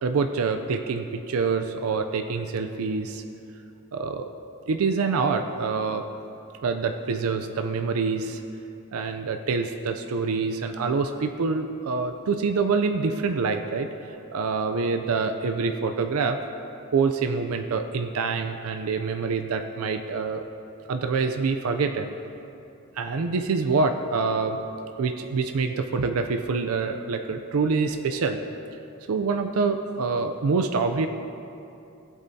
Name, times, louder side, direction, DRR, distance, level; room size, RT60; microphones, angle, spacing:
voice 1, 0.0-3.2 3.9-4.3 4.7-6.1 6.6-8.4 8.9-13.9 14.3-16.4 16.9-20.5 20.9-22.1 23.0-24.6 25.0-28.4 29.1-31.1, right 4 dB, 90° right, 7 dB, 0.5 m, -26 dB
16.0 x 8.3 x 2.7 m, 2.7 s
head